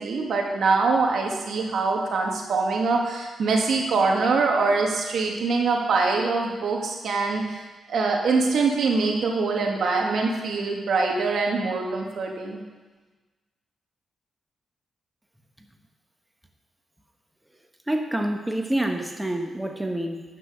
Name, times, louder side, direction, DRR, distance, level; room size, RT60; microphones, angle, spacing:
voice 1, 0.0-7.6 7.9-12.6, right 4 dB, 70° right, 0 dB, 1.8 m, -24 dB
voice 2, 17.9-20.2, right 1 dB, 10° right, 4 dB, 1.3 m, -27 dB
9.6 x 6.1 x 6.2 m, 1.2 s
cardioid pair, 70°, 0 cm